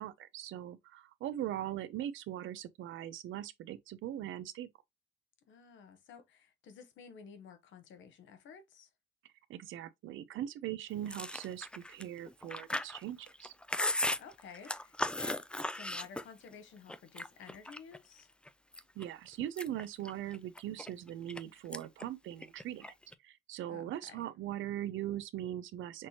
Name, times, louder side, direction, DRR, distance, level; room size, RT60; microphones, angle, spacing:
voice 1, 0.0-4.7 9.5-13.5 19.0-22.9 23.2-26.1, right 12 dB, 75° right, 0.6 m, -40 dB
voice 2, 5.5-8.9 14.2-15.4 15.7-18.3 23.7-24.2, left 6 dB, 75° left, 0.9 m, -53 dB
Chewing mastication, 11.1-16.5 16.9-18.0 18.5-19.0 19.4-21.4 21.7-22.0 22.3-23.1, left 1 dB, 5° left, 0.3 m, -37 dB
6.0 x 3.0 x 2.8 m
cardioid pair, 90°, 20 cm